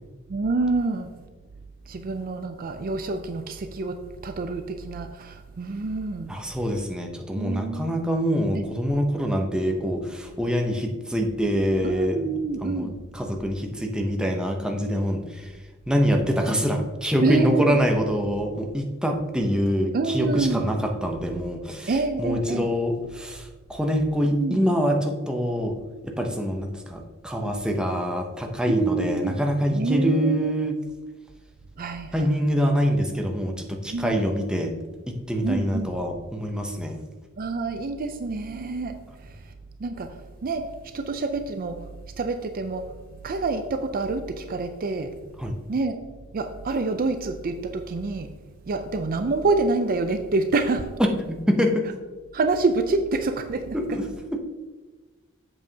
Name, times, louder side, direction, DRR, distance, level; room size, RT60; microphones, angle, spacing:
voice 1, 0.3-1.1 1.9-6.3 7.3-7.9 8.5-8.6 11.8-13.0 17.2-17.8 19.9-20.7 21.9-22.7 24.3-24.6 28.7-29.4 29.7-30.5 31.8-32.5 33.9-34.2 35.4-36.0 37.4-39.5 39.8-40.7 40.9-41.8 42.2-42.9 43.2-45.1 45.7-46.0 46.3-48.3 48.7-50.9 52.3-53.8, right 3 dB, 40° right, 7 dB, 0.4 m, -27 dB
voice 2, 6.3-12.2 12.6-12.9 13.1-15.5 15.9-21.9 22.2-25.8 26.0-30.7 32.1-34.7 35.3-37.0 45.4-45.5 51.0-51.9 53.7-54.4, equal, 5° right, 2 dB, 0.7 m, -25 dB
7.8 x 7.3 x 2.8 m, 1.3 s
head